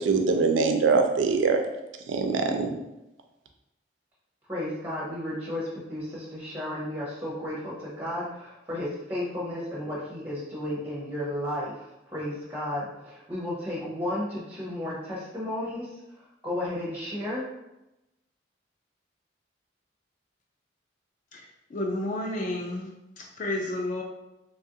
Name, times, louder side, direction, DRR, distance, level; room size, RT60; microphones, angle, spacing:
voice 1, 0.0-1.6 2.1-2.7, right 4 dB, 80° right, 5 dB, 0.4 m, -23 dB
voice 2, 4.5-11.7 12.1-17.5, left 1 dB, 10° right, -6 dB, 0.5 m, -33 dB
voice 3, 21.7-22.9 23.4-24.0, left 1 dB, 40° left, 0 dB, 0.3 m, -30 dB
3.1 x 2.4 x 2.7 m, 0.94 s
head